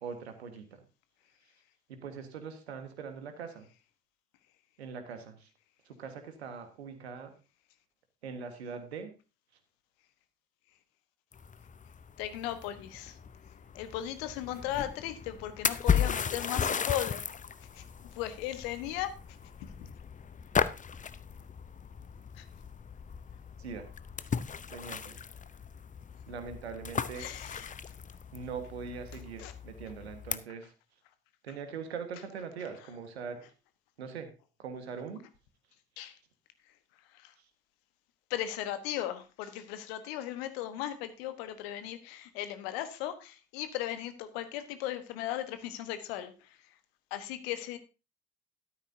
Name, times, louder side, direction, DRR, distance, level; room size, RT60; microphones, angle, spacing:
voice 1, 0.0-0.8 1.9-3.7 4.8-5.5 5.8-7.3 8.2-9.1 23.6-23.9 24.7-25.2 26.3-27.3 28.3-30.7 31.4-33.4 34.0-34.3 34.6-35.2 37.4-37.5, right 6 dB, 80° right, 8 dB, 1.6 m, -42 dB
sound 1, 11.3-30.4, left 7 dB, 25° left, 0.7 m, -36 dB
voice 2, 12.2-13.2 13.7-17.2 17.8-17.9 18.2-19.1 22.4-22.5 27.2-27.7 29.4-29.5 36.0-36.1 37.2-37.3 38.3-46.3 47.1-47.8, left 12 dB, 70° left, 11 dB, 1.3 m, -37 dB
13.0 x 12.0 x 2.7 m, 0.30 s
figure-of-eight pair, 50°, 32 cm